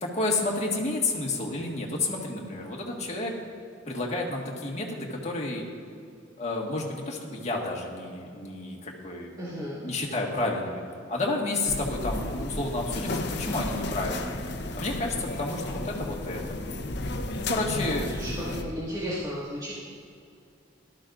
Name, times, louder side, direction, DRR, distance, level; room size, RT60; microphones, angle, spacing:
voice 1, 0.0-3.3 3.9-5.6 6.4-9.4 9.7-10.8 11.1-14.3 14.7-16.6 17.4-18.1, left 2 dB, 40° left, -2 dB, 1.7 m, -30 dB
voice 2, 9.4-10.2 17.9-19.8, equal, 20° right, -10 dB, 2.2 m, -35 dB
sound 1, 11.7-18.6, left 2 dB, 65° left, 0.9 m, -33 dB
17.5 x 12.5 x 2.6 m, 2.4 s
head